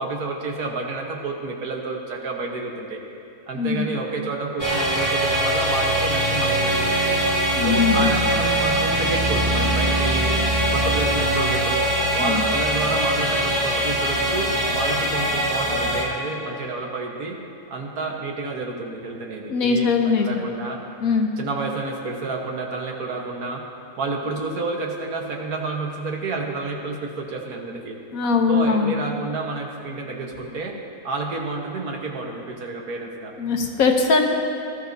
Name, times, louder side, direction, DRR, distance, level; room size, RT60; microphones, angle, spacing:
voice 1, 0.0-3.0 3.5-7.2 7.6-10.4 10.7-17.4 17.7-20.8 21.4-23.6 24.0-28.0 28.5-30.8 31.0-33.3, right 3 dB, 75° right, 0 dB, 1.7 m, -30 dB
voice 2, 3.6-3.9 7.6-8.1 12.2-12.4 19.5-20.3 21.0-21.3 28.1-28.9 33.4-34.3, left 5 dB, 65° left, 3 dB, 1.4 m, -20 dB
sound 1, 4.6-16.0, right 1 dB, 25° right, 1.7 m, -22 dB
18.5 x 13.0 x 2.7 m, 2.9 s
omnidirectional pair, 1.6 m